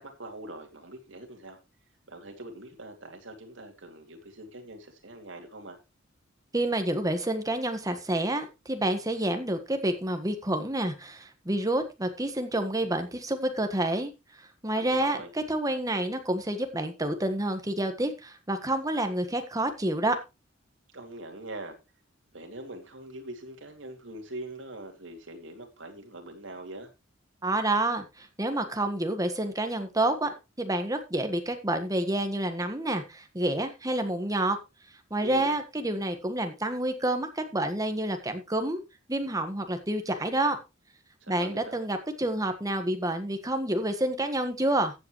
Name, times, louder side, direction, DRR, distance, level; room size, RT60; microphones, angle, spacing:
voice 1, 0.0-1.6 2.1-5.8 14.7-15.3 20.9-21.8 22.3-26.9 35.2-35.6 41.2-41.8, right 1 dB, 70° right, 2.7 m, -43 dB
voice 2, 6.5-14.1 14.6-20.2 27.4-34.6 35.1-38.8 39.1-40.6 41.3-44.9, right 1 dB, 20° right, 1.5 m, -28 dB
14.5 x 8.1 x 3.2 m
head